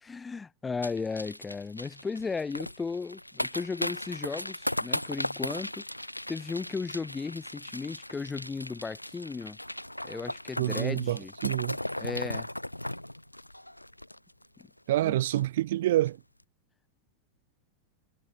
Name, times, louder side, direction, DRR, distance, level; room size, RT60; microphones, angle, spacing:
voice 1, 0.0-5.8 6.3-9.6 10.0-11.3 12.0-12.5 15.0-15.1, left 4 dB, 15° left, 0.8 m, -35 dB
sound 1, 0.8-14.6 14.9-15.0 15.2-15.6 15.9-16.1, left 1 dB, 85° left, 0.6 m, -37 dB
voice 2, 10.6-11.8 14.9-16.2, right 14 dB, 55° right, 0.4 m, -27 dB
figure-of-eight pair, 90°, 0 cm